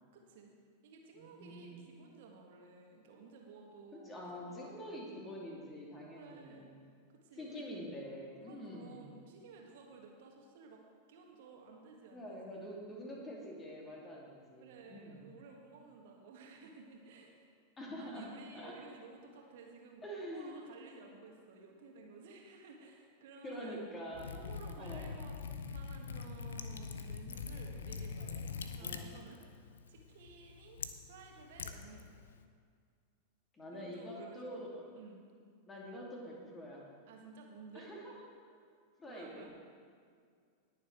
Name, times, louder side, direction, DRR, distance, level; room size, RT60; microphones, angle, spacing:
voice 1, 0.1-0.5 0.8-4.7 6.1-6.7 7.1-7.6 8.4-10.8 11.1-12.7 14.6-17.4 18.0-23.9 24.3-25.4 25.7-29.4 29.9-30.8 31.1-32.1 33.7-34.6 34.9-35.2 37.1-37.9 39.1-39.5, right 4 dB, 55° right, 1 dB, 1.7 m, -55 dB
voice 2, 1.1-1.9 3.9-6.8 7.4-9.1 12.1-15.3 17.8-18.8 20.0-20.6 23.4-24.3 24.8-25.1 28.8-29.1 33.5-34.8 35.7-36.8 37.7-38.5 39.0-39.5, equal, 20° left, -2 dB, 2.7 m, -46 dB
Liquid, 24.1-32.4, left 5 dB, 65° left, 0.7 m, -44 dB
19.5 x 7.2 x 4.6 m, 2.1 s
figure-of-eight pair, 90°, 0 cm